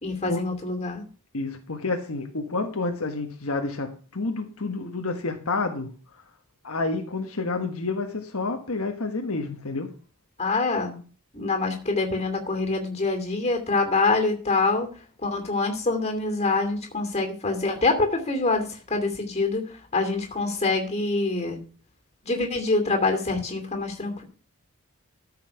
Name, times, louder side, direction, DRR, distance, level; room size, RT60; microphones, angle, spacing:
voice 1, 0.0-1.0 10.4-11.0 11.3-14.9 15.2-21.6 22.2-24.2, left 3 dB, 30° left, 5 dB, 2.6 m, -25 dB
voice 2, 1.3-5.9 6.6-9.9, left 3 dB, 75° left, 4 dB, 1.3 m, -29 dB
13.5 x 5.7 x 5.8 m, 0.39 s
head